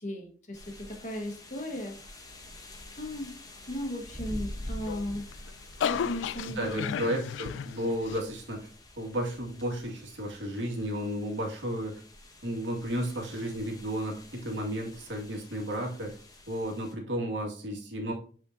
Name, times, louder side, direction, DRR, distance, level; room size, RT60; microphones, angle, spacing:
voice 1, 0.0-2.0 3.0-3.4 3.7-5.3 5.8-7.0, left 1 dB, 40° left, 1.4 m, -36 dB
sound 1, 0.5-16.9, left 1 dB, 20° left, 0.9 m, -47 dB
sound 2, 4.7-8.2, left 8 dB, 85° left, 0.3 m, -34 dB
voice 2, 6.6-8.7 9.0-12.0 12.4-16.2 16.5-18.1, equal, 90° right, 2.0 m, -33 dB
8.3 x 4.4 x 2.7 m
head